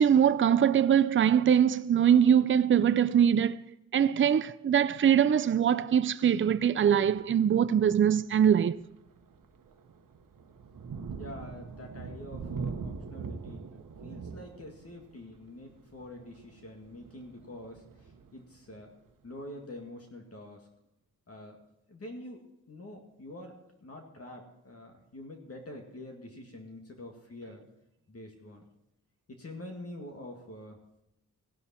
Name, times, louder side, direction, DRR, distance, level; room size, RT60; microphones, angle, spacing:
voice 1, 0.0-3.6 3.9-8.8, right 8 dB, 40° right, 0.4 m, -23 dB
Thunder, 7.0-7.4 7.9-8.1 8.5-19.1, right 5 dB, 80° right, 1.2 m, -43 dB
voice 2, 11.2-13.7 14.0-18.9 19.2-20.7 21.3-21.6 21.9-27.6 28.1-28.6 29.3-30.8, left 1 dB, 45° left, 2.2 m, -46 dB
16.5 x 11.5 x 4.4 m
wide cardioid pair, 115°, 33 cm